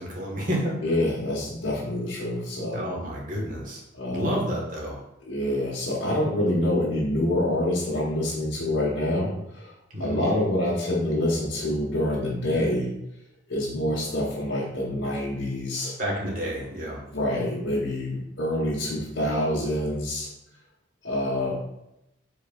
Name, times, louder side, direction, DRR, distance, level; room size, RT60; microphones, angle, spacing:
voice 1, 0.0-0.7 2.7-3.8 4.1-5.0 9.9-10.3 16.0-17.0, equal, 45° right, -2 dB, 1.7 m, -30 dB
voice 2, 0.8-2.8 3.9-4.4 5.2-9.7 10.0-12.9 13.5-16.0 17.1-20.3 21.0-21.5, left 1 dB, 90° left, -7 dB, 1.6 m, -26 dB
8.1 x 4.6 x 2.6 m, 0.85 s
head